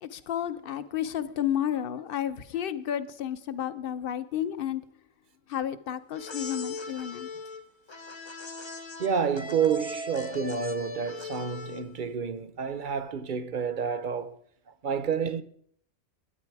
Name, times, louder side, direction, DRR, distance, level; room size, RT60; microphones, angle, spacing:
voice 1, 0.0-4.8 5.5-7.3, left 10 dB, 50° left, 0.9 m, -31 dB
sound 1, 6.1-12.0, left 3 dB, 25° left, 0.9 m, -39 dB
voice 2, 9.0-14.4 14.8-15.4, right 7 dB, 45° right, 0.8 m, -29 dB
21.0 x 9.8 x 4.7 m
omnidirectional pair, 1.4 m